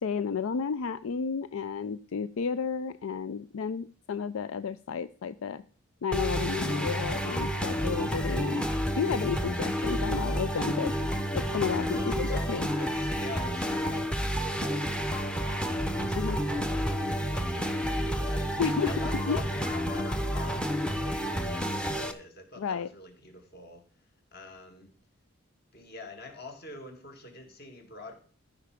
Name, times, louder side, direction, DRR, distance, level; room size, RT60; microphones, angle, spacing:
voice 1, 0.0-5.6 6.0-8.6 9.0-10.9 11.3-12.7 16.2-16.4 18.6-18.9 19.3-19.4 22.6-22.9, left 6 dB, 75° left, 14 dB, 0.4 m, -32 dB
sound 1, 6.1-22.1, equal, 5° left, 0.7 m, -30 dB
voice 2, 11.8-20.6 20.9-23.8 24.3-24.9 25.7-28.1, left 2 dB, 45° left, 4 dB, 2.3 m, -45 dB
14.5 x 5.8 x 5.1 m, 0.40 s
head